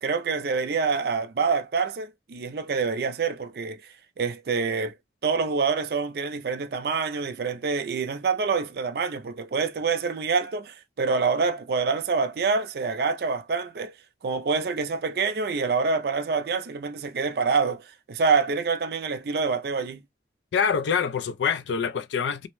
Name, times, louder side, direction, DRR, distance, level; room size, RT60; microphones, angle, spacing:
voice 1, 0.0-4.9 5.2-13.9 14.2-20.0, right 5 dB, 55° right, 0.4 m, -26 dB
voice 2, 20.5-22.5, left 6 dB, 75° left, 0.3 m, -25 dB
2.6 x 2.1 x 2.9 m
head